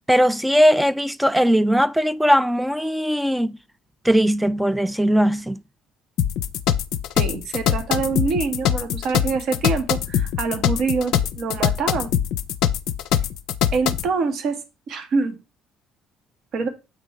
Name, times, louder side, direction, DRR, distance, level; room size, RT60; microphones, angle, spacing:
voice 1, 0.0-3.6 4.0-5.6, equal, 5° right, 0.4 m, -19 dB
sound 1, 6.2-14.1, left 10 dB, 70° left, 0.5 m, -22 dB
voice 2, 7.2-12.1 13.7-14.6 14.9-15.4 16.5-16.7, right 4 dB, 60° right, 1.2 m, -25 dB
8.4 x 3.1 x 5.0 m
hypercardioid pair, 55°, 0 cm